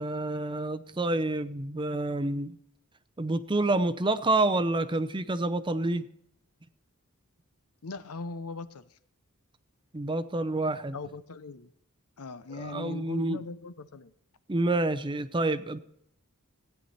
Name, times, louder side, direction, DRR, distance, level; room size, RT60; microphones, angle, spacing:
voice 1, 0.0-2.6 3.2-6.1 9.9-11.0 12.5-13.4 14.5-15.8, right 2 dB, 20° right, 12 dB, 0.6 m, -28 dB
voice 2, 7.8-8.9 10.9-11.7 12.2-14.1, left 3 dB, 75° left, 13 dB, 0.8 m, -39 dB
16.5 x 9.3 x 4.2 m, 0.72 s
head